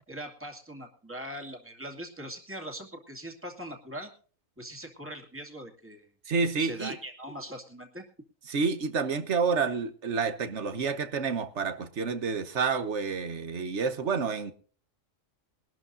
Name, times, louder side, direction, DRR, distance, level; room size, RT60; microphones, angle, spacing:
voice 1, 0.1-4.1 4.6-6.1 6.6-8.0, right 1 dB, 10° right, 2.3 m, -41 dB
voice 2, 6.3-6.9 8.5-14.5, right 5 dB, 60° right, 1.5 m, -29 dB
22.5 x 12.5 x 2.6 m
omnidirectional pair, 1.3 m